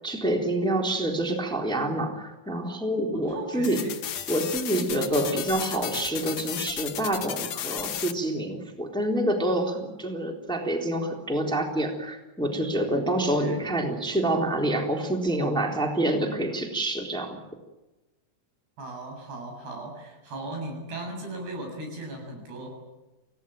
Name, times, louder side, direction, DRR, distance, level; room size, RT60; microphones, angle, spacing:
voice 1, 0.0-3.8 4.3-17.4, right 1 dB, ahead, 2 dB, 3.1 m, -27 dB
voice 2, 3.1-3.9 5.1-5.4 13.2-13.6 18.8-22.7, right 1 dB, 90° right, 2 dB, 9.6 m, -37 dB
sound 1, 3.6-8.1, left 10 dB, 60° left, 1.9 m, -34 dB
28.0 x 17.5 x 9.2 m, 1.1 s
omnidirectional pair, 4.5 m